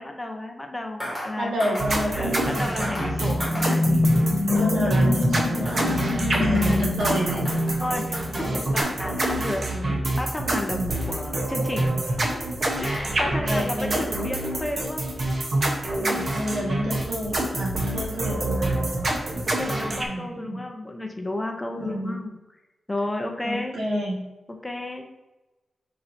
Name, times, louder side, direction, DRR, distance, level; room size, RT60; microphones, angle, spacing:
voice 1, 0.0-1.7 2.1-4.0 6.0-6.3 6.5-6.9 7.8-12.4 12.8-15.1 19.6-22.3 22.9-23.8 24.6-25.0, left 1 dB, 15° left, 3 dB, 0.6 m, -32 dB
sound 1, 1.0-1.3 1.6-1.9 2.8-3.1 3.4-3.7 5.7-6.1 6.3-6.7 7.0-7.9 8.1-8.5 8.8-8.9, equal, 10° right, 2.0 m, -35 dB
voice 2, 1.4-3.1 4.5-7.5 8.4-8.6 13.2-14.3 16.0-20.7 21.8-22.3 23.4-24.2, equal, 70° right, -3 dB, 1.6 m, -30 dB
sound 2, 1.8-20.0, right 1 dB, 40° right, 0.9 m, -26 dB
sound 3, 2.7-9.0, left 2 dB, 70° left, 0.5 m, -25 dB
9.8 x 4.5 x 2.6 m, 1.1 s
wide cardioid pair, 175°, 0 cm